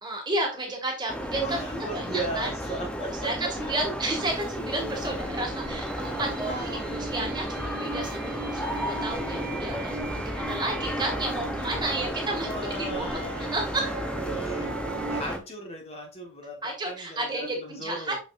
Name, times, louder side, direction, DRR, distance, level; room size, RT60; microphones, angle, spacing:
voice 1, 0.0-1.6 1.9-2.5 3.2-13.2 13.5-13.9 16.6-18.1, right 2 dB, 20° right, 0 dB, 2.1 m, -32 dB
sound 1, 1.1-15.4, equal, 5° left, 0.7 m, -33 dB
voice 2, 1.3-3.7 6.0-7.1 12.3-13.6 14.2-18.2, right 2 dB, 30° left, 1 dB, 1.4 m, -37 dB
sound 2, 4.6-15.2, right 3 dB, 50° right, 0.9 m, -39 dB
6.7 x 5.9 x 2.5 m, 0.32 s
head